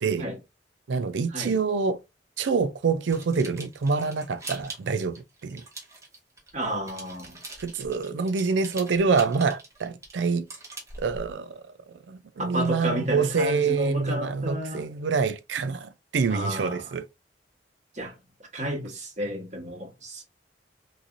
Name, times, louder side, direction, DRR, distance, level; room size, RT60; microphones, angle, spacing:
voice 1, 0.9-2.0 2.4-5.6 7.6-10.5 11.0-11.6 12.1-17.0, right 5 dB, 90° right, 0.5 m, -26 dB
sound 1, 3.1-6.5 6.8-11.3, right 2 dB, 15° right, 1.0 m, -42 dB
voice 2, 6.5-7.4 9.1-9.2 12.4-14.9 16.3-16.8 17.9-18.1 18.5-20.2, equal, 40° right, 1.2 m, -32 dB
3.1 x 2.9 x 2.6 m
head